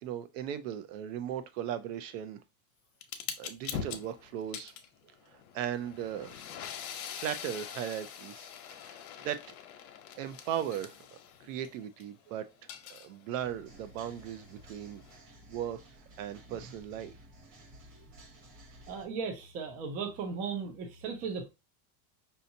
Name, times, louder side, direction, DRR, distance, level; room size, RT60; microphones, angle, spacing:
voice 1, 0.0-2.4 3.4-4.7 5.3-6.4 7.1-8.5 8.8-9.4 10.2-10.9 11.4-12.5 12.9-15.0 15.5-15.8 16.2-17.1, right 10 dB, 60° right, 0.6 m, -37 dB
sound 1, 3.0-12.0 12.4-15.2, left 8 dB, 80° left, 0.9 m, -44 dB
sound 2, 13.4-19.0, right 1 dB, 45° right, 1.3 m, -54 dB
voice 2, 18.9-21.5, right 5 dB, 20° right, 0.4 m, -36 dB
5.4 x 2.8 x 2.6 m
supercardioid pair, 165°, 44 cm